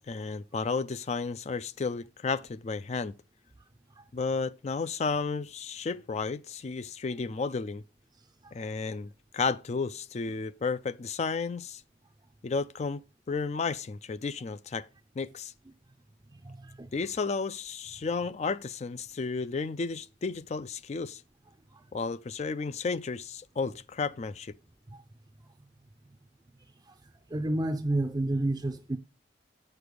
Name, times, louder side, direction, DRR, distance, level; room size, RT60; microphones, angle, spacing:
voice 1, 0.0-3.1 4.1-7.8 8.5-11.8 12.4-13.0 13.3-14.9 15.2-15.5 16.9-21.2 21.9-24.5, left 4 dB, 35° left, 0.4 m, -32 dB
voice 2, 16.4-16.9 21.7-21.8 24.9-25.0 27.3-29.0, right 1 dB, 20° right, 0.5 m, -30 dB
8.6 x 6.5 x 5.1 m
head